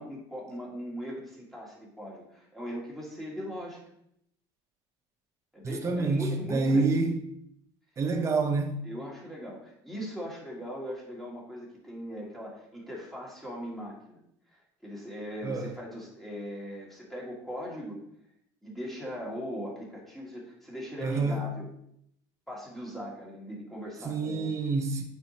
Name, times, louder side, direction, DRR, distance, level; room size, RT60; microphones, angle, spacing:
voice 1, 0.0-3.8 5.5-6.9 8.8-14.2 14.5-14.6 14.8-18.0 18.6-21.7 22.5-24.5, equal, ahead, 2.1 m, -39 dB
voice 2, 5.6-7.1 8.0-8.8 15.4-15.7 21.0-21.5 24.0-25.0, right 3 dB, 25° right, 0.7 m, -27 dB
8.5 x 4.7 x 2.9 m
cardioid pair, 135°, 12 cm